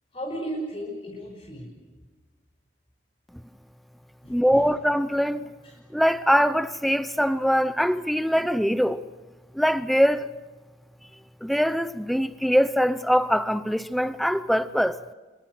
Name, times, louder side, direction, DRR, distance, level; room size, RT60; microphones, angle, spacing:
voice 1, 0.1-1.7 4.2-4.7 5.6-5.7, right 1 dB, 30° left, 5.8 m, -35 dB
voice 2, 4.3-5.5 5.9-9.0 9.5-10.3 11.4-15.0, equal, ahead, 0.7 m, -22 dB
26.5 x 23.5 x 6.3 m
head